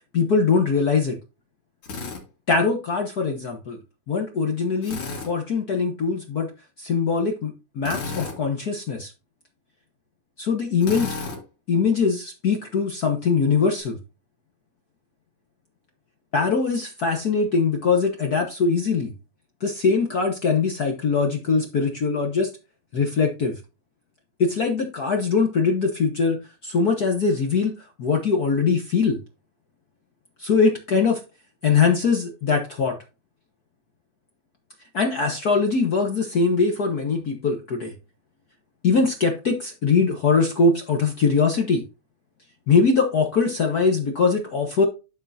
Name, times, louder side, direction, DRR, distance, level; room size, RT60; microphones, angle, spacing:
voice 1, 0.1-1.2 2.5-3.8 4.1-5.0 5.3-6.5 6.8-9.1 10.4-11.2 11.7-14.0 16.3-19.1 19.6-22.5 22.9-23.5 24.4-29.2 30.4-31.2 31.6-33.0 34.9-37.9 38.8-41.8 42.7-44.8, left 4 dB, 70° left, 3 dB, 0.9 m, -22 dB
Drill, 1.8-2.2 4.8-5.3 7.8-8.4 10.8-11.4, left 4 dB, 50° left, 2.7 m, -32 dB
12.5 x 4.8 x 2.6 m, 0.30 s
omnidirectional pair, 3.4 m